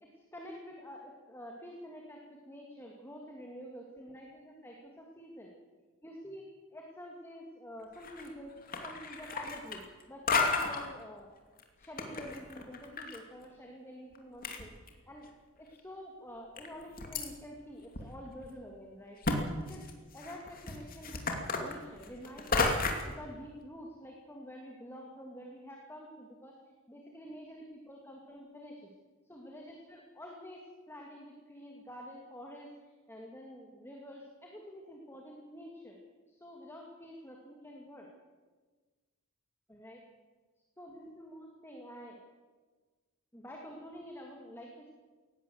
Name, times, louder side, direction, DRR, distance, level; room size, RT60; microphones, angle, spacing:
voice 1, 0.0-5.5 6.0-6.4 6.7-8.5 8.8-11.3 11.8-14.7 15.1-15.3 15.6-19.2 19.6-19.9 20.1-22.7 23.0-26.6 26.9-28.9 29.2-36.0 36.3-38.1 39.7-40.0 40.8-42.2 43.3-44.9, equal, 10° left, 0 dB, 2.5 m, -48 dB
sound 1, 7.9-8.3 8.6-10.0 10.3-10.9 11.6-13.2 13.4-13.5 14.2-14.3 14.4-15.3 15.8-15.9 16.6-17.3 17.9-18.0 18.4-18.5 19.2-19.4 19.7-23.1, left 3 dB, 40° left, 2.7 m, -33 dB
19.5 x 17.0 x 8.0 m, 1.3 s
head